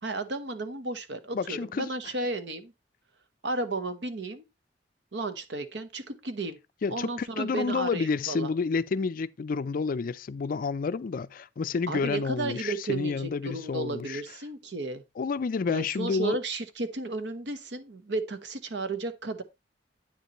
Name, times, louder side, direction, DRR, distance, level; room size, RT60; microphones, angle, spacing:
voice 1, 0.0-2.7 3.4-4.4 5.1-6.6 6.9-8.5 11.9-15.0 15.7-19.4, right 2 dB, 75° right, 1.0 m, -33 dB
voice 2, 1.3-1.9 6.8-14.2 15.2-16.4, left 4 dB, 50° left, 0.4 m, -30 dB
9.0 x 6.8 x 3.0 m
head